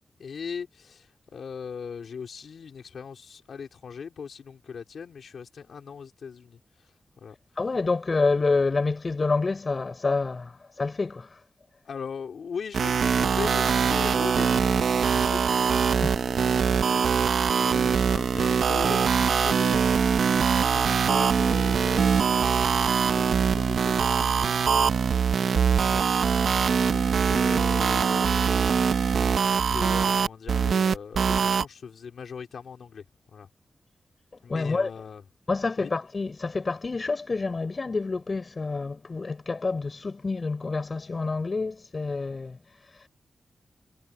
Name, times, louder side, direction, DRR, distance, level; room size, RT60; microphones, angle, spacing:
voice 1, 0.2-6.9 7.2-7.4 11.9-26.1 26.9-28.9 29.1-33.0 33.3-33.5 34.4-35.2 35.8-35.9, left 6 dB, 90° left, 3.5 m, -39 dB
voice 2, 7.6-11.3 16.0-16.1 34.5-34.9 35.5-42.6, left 3 dB, 45° left, 5.8 m, -28 dB
sound 1, 12.7-31.6, right 6 dB, 90° right, 0.7 m, -23 dB
cardioid pair, 75°, 0 cm